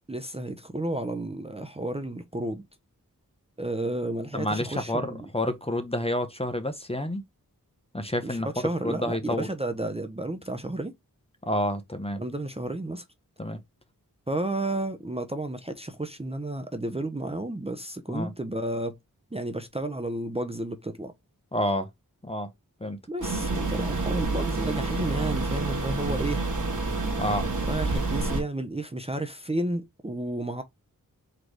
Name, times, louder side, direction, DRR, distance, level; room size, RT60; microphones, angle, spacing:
voice 1, 0.1-2.6 3.6-5.2 8.2-10.9 12.2-13.0 14.3-19.0 19.3-21.1 23.1-26.5 27.7-30.6, right 1 dB, 15° right, 0.6 m, -32 dB
voice 2, 4.3-7.2 7.9-8.5 8.8-9.5 11.4-12.2 13.4-13.6 18.1-18.3 21.5-21.9 22.2-22.5 22.8-23.0 27.2-27.5, left 1 dB, 15° left, 0.7 m, -29 dB
sound 1, 23.2-28.4, right 3 dB, 60° right, 1.4 m, -28 dB
3.9 x 3.1 x 3.2 m
wide cardioid pair, 65°, 35 cm